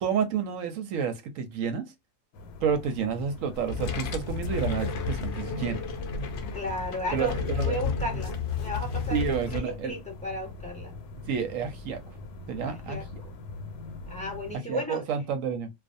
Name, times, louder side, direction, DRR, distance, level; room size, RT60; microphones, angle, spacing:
voice 1, 0.0-1.8 2.6-5.8 7.1-7.8 9.1-9.9 11.3-12.0 12.5-13.2 14.7-15.7, right 7 dB, 70° right, 0.9 m, -30 dB
sound 1, 2.3-14.6, left 3 dB, 90° left, 1.1 m, -44 dB
sound 2, 3.5-9.6, left 5 dB, 65° left, 0.7 m, -32 dB
voice 2, 6.5-10.9 12.6-13.3 14.1-15.0, equal, 5° left, 1.1 m, -35 dB
2.4 x 2.3 x 2.5 m
omnidirectional pair, 1.6 m